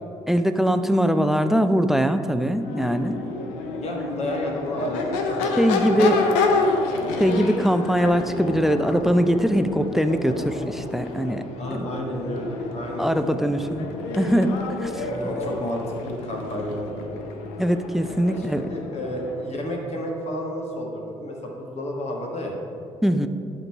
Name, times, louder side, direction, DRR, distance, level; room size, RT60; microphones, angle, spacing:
voice 1, 0.3-3.2 5.6-6.2 7.2-11.4 11.7-11.9 13.0-13.9 14.1-14.5 14.8-15.0 17.6-18.6 23.0-23.3, equal, ahead, 10 dB, 0.5 m, -21 dB
Crowd / Race car auto racing / Accelerating revving vroom, 2.5-19.6, left 3 dB, 75° left, 0.6 m, -29 dB
voice 2, 3.7-6.3 6.5-6.7 7.0-7.3 11.6-13.1 13.4-13.6 15.0-17.2 18.2-22.6, equal, 45° left, 0 dB, 1.4 m, -31 dB
11.0 x 3.9 x 4.5 m, 2.7 s
hypercardioid pair, 50°, 15 cm